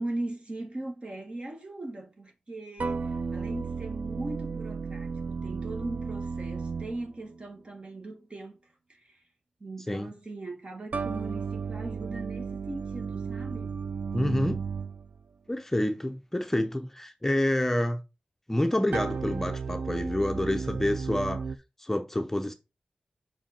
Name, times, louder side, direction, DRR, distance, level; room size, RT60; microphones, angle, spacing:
voice 1, 0.0-8.6 8.9-9.2 9.6-13.8, right 2 dB, 40° right, 1.9 m, -39 dB
sound 1, 2.8-7.4 10.9-15.2 18.9-21.6, right 5 dB, 75° right, 0.4 m, -34 dB
voice 2, 14.1-14.6 15.5-18.0 18.5-21.5 21.8-22.5, left 1 dB, 10° left, 0.7 m, -28 dB
5.9 x 5.0 x 4.3 m
wide cardioid pair, 115°, 3 cm